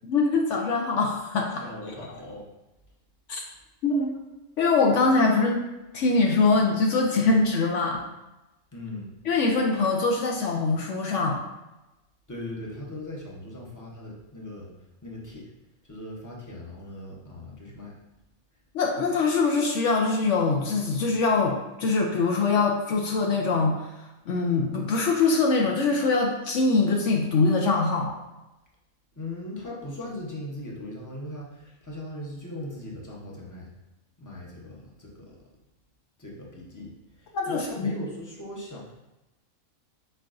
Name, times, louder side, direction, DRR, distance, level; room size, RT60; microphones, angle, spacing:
voice 1, 0.0-1.6 3.3-3.4 3.8-4.1 4.6-5.7 5.9-8.0 9.2-11.4 18.7-23.8 24.3-28.1 37.3-37.9, left 3 dB, 70° left, 1 dB, 0.9 m, -23 dB
voice 2, 1.6-2.4 8.7-9.1 12.3-14.7 15.0-15.5 15.8-17.9 29.2-33.7 34.2-35.4 36.2-38.9, left 1 dB, 20° left, -3 dB, 0.6 m, -39 dB
4.6 x 4.6 x 2.5 m, 1.0 s
omnidirectional pair, 1.4 m